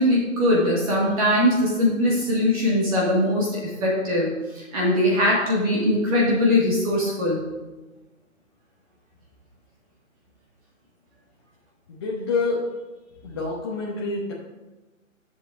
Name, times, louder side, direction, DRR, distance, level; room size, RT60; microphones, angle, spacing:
voice 1, 0.0-7.4, left 1 dB, 25° right, -5 dB, 1.9 m, -21 dB
voice 2, 11.9-12.7 13.2-14.3, left 3 dB, 20° left, -6 dB, 0.8 m, -27 dB
14.5 x 7.5 x 2.6 m, 1.1 s
hypercardioid pair, 155°, 41 cm